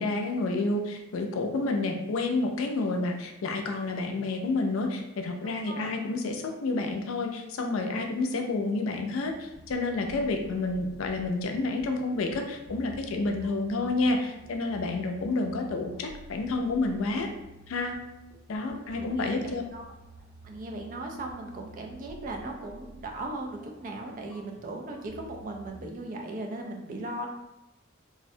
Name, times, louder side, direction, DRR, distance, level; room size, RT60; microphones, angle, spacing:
voice 1, 0.0-17.3 17.7-18.0 18.5-19.6, left 3 dB, 90° left, 3 dB, 0.4 m, -29 dB
voice 2, 5.4-5.9 8.2-8.5 18.7-19.8 20.4-27.3, right 2 dB, 45° right, 2 dB, 0.4 m, -38 dB
sound 1, 9.2-25.7, right 2 dB, 80° right, 1.2 m, -50 dB
2.5 x 2.1 x 2.6 m, 0.91 s
head